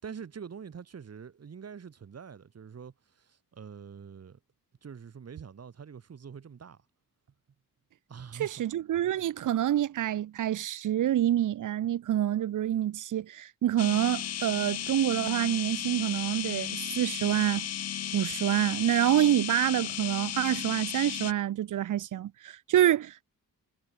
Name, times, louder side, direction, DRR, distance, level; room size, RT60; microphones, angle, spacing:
voice 1, 0.0-4.4 4.8-6.8 8.1-8.7, right 7 dB, 45° right, 5.3 m, -45 dB
voice 2, 8.4-17.7 18.1-23.3, right 12 dB, 60° right, 0.7 m, -27 dB
sound 1, 13.8-21.3, left 10 dB, 45° left, 0.7 m, -35 dB
wide cardioid pair, 160°, 35 cm